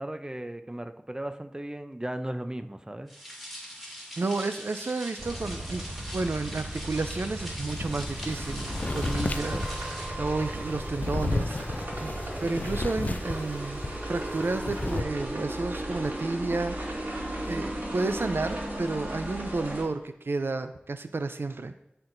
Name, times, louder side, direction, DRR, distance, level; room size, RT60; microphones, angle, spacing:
voice 1, 0.0-3.1, right 1 dB, 20° right, 8 dB, 0.6 m, -36 dB
sound 1, 3.1-10.1, equal, ahead, 2.2 m, -42 dB
voice 2, 4.2-5.8 6.1-11.6 12.0-13.8 14.1-17.1 17.5-21.7, right 3 dB, 80° right, 9 dB, 0.4 m, -31 dB
sound 2, 5.2-19.8, right 1 dB, 60° right, 2.6 m, -35 dB
sound 3, 7.7-14.0 14.3-15.0, left 2 dB, 45° left, 0.4 m, -33 dB
13.0 x 4.5 x 2.6 m, 0.88 s
wide cardioid pair, 50°, 4 cm